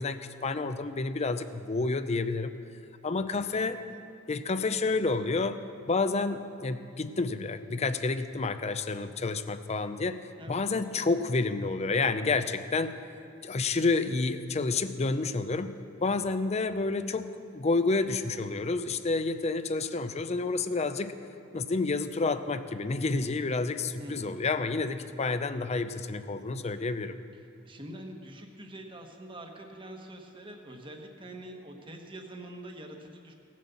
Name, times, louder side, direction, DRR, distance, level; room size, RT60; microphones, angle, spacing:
voice 1, 0.0-2.5 3.0-3.8 4.3-10.2 10.5-12.9 13.4-21.1 21.5-27.2, left 3 dB, 35° left, 11 dB, 0.5 m, -29 dB
voice 2, 24.0-24.4 27.6-33.3, right 1 dB, 25° right, 3 dB, 1.3 m, -45 dB
17.5 x 7.5 x 7.0 m, 2.6 s
head